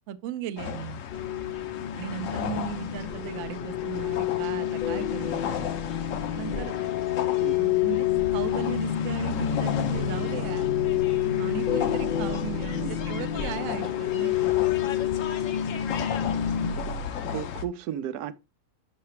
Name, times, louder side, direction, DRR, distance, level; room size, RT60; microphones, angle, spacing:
voice 1, 0.1-1.0 2.0-5.7 6.3-6.7 7.6-10.7 11.4-14.5, right 10 dB, 70° right, 0.8 m, -37 dB
sound 1, 0.6-17.6, left 7 dB, 65° left, 0.9 m, -34 dB
sound 2, 1.1-16.7, left 11 dB, 90° left, 0.4 m, -28 dB
voice 2, 17.2-18.3, right 10 dB, 85° right, 1.1 m, -33 dB
6.6 x 5.7 x 3.1 m
omnidirectional pair, 1.6 m